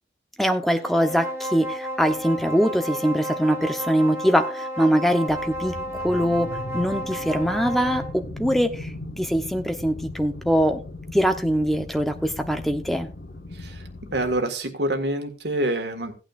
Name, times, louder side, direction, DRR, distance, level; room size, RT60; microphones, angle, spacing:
voice 1, 0.4-6.5 6.7-10.8 11.1-13.1, equal, ahead, 6 dB, 0.9 m, -23 dB
sound 1, 0.8-8.2, equal, 15° right, 1.4 m, -32 dB
sound 2, 5.3-14.4, left 1 dB, 60° left, 1.1 m, -38 dB
voice 2, 13.5-16.1, right 1 dB, 75° right, 6 dB, 1.8 m, -27 dB
16.5 x 8.8 x 2.5 m, 0.32 s
head